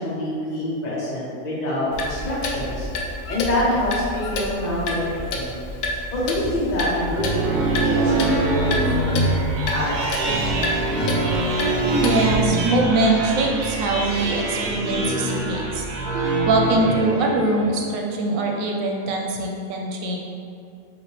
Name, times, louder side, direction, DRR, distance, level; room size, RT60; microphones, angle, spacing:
voice 1, 0.0-2.9 3.3-5.6 6.1-9.5 9.7-9.9 10.2-10.5, left 1 dB, 35° left, -7 dB, 1.0 m, -26 dB
Clock, 1.9-12.5, left 1 dB, 85° left, 1.0 m, -29 dB
sound 1, 6.9-17.8, right 2 dB, 60° right, 0.7 m, -24 dB
voice 2, 12.0-15.8 16.5-20.2, right 2 dB, 85° right, 0 dB, 1.0 m, -22 dB
5.0 x 2.7 x 3.2 m, 2.4 s
omnidirectional pair, 1.4 m